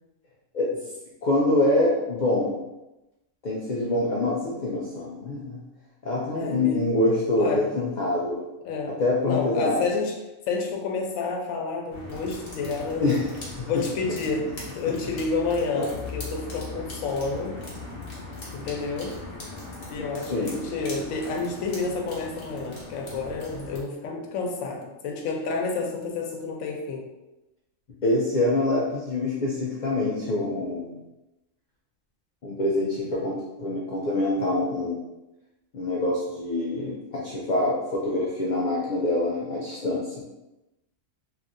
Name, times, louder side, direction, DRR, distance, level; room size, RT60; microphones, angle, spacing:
voice 1, 1.2-2.5 3.4-5.6 6.0-8.5 8.9-9.8 13.0-13.8 15.8-15.9 20.0-20.6 28.0-30.9 32.4-35.0 35.7-40.2, left 2 dB, 70° left, -4 dB, 0.4 m, -25 dB
voice 2, 6.3-6.8 7.4-7.7 8.6-10.1 10.5-13.1 13.7-14.5 14.7-17.6 18.5-19.1 19.9-27.0, left 4 dB, 90° left, 1 dB, 1.0 m, -29 dB
sound 1, 11.9-23.8, left 2 dB, 50° left, 1.0 m, -39 dB
3.1 x 2.6 x 2.5 m, 0.98 s
omnidirectional pair, 1.4 m